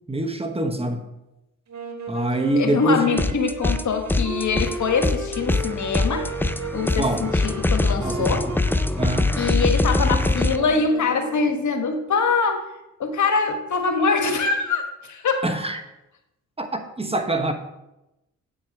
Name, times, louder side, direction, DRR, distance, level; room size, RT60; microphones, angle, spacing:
voice 1, 0.1-1.0 2.1-3.1 7.0-7.3 8.0-8.4 9.0-9.4 15.4-15.8 16.6-17.5, right 2 dB, 20° right, 1.1 m, -25 dB
sound 1, 1.7-11.7, right 2 dB, 60° right, 1.6 m, -35 dB
voice 2, 2.5-6.3 6.7-8.4 9.4-12.6 13.0-15.4, left 4 dB, 65° left, 1.3 m, -23 dB
sound 2, 3.2-3.8 4.1-10.6, left 2 dB, 5° left, 0.5 m, -23 dB
8.3 x 4.6 x 6.0 m
supercardioid pair, 50°, 31 cm